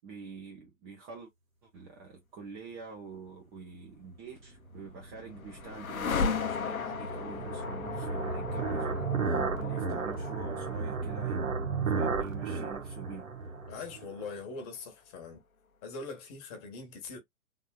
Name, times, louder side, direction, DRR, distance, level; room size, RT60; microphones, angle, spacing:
voice 1, 0.0-1.3 1.6-11.6 11.9-13.3, right 4 dB, 15° right, 0.6 m, -46 dB
sound 1, 4.6-14.6, left 6 dB, 80° left, 0.6 m, -37 dB
sound 2, 4.7-14.2, right 5 dB, 70° right, 1.0 m, -34 dB
voice 2, 13.7-15.4 15.8-17.2, left 4 dB, 30° left, 1.1 m, -42 dB
3.6 x 2.6 x 2.2 m
figure-of-eight pair, 115°, 41 cm